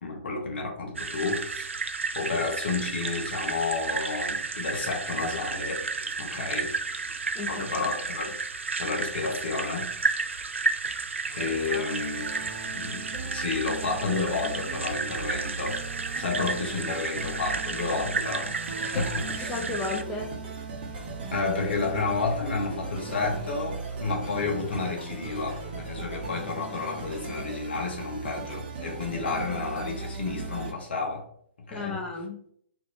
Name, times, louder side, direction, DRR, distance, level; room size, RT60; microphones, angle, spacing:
voice 1, 0.0-1.7 2.2-5.9 6.2-6.7 7.4-8.4 8.8-10.0 11.3-12.3 12.7-15.8 16.1-18.5 18.8-19.7 21.3-31.3 31.7-32.0, left 4 dB, 60° left, 0.9 m, -31 dB
sound 1, 0.9-20.0, right 4 dB, 80° right, 0.4 m, -32 dB
voice 2, 7.4-7.9 11.7-11.9 18.9-19.0 19.5-20.3 31.7-32.4, left 3 dB, 15° left, 0.4 m, -33 dB
sound 2, 11.3-30.7, right 3 dB, 50° right, 0.9 m, -38 dB
2.8 x 2.6 x 3.1 m
figure-of-eight pair, 120°, 7 cm